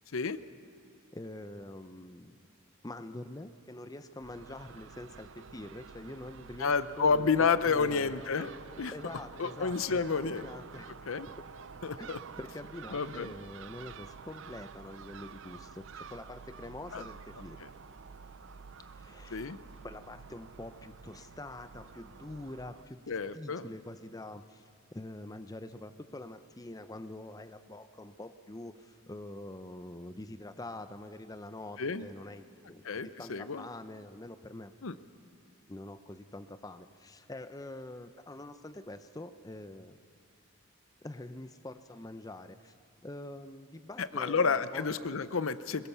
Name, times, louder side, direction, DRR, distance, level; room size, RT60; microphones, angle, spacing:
voice 1, 1.1-2.5 2.8-8.2 8.9-10.0 10.3-10.9 11.3-11.5 12.0-17.6 18.9-19.5 19.8-24.6 24.9-34.7 35.7-40.0 41.0-42.7 43.0-45.2, left 1 dB, 15° left, 10 dB, 0.6 m, -45 dB
Crow / Gull seagull, 4.2-22.8, right 5 dB, 60° right, 0.5 m, -49 dB
voice 2, 6.6-8.5 8.8-8.9 9.4-10.5 11.1-11.3 11.8-12.2 12.9-13.3 16.9-17.0 19.3-19.6 23.1-23.7 31.8-32.1 32.8-33.7 34.8-35.0 44.0-45.9, left 5 dB, 70° left, 14 dB, 0.7 m, -30 dB
22.0 x 22.0 x 7.0 m, 2.5 s
head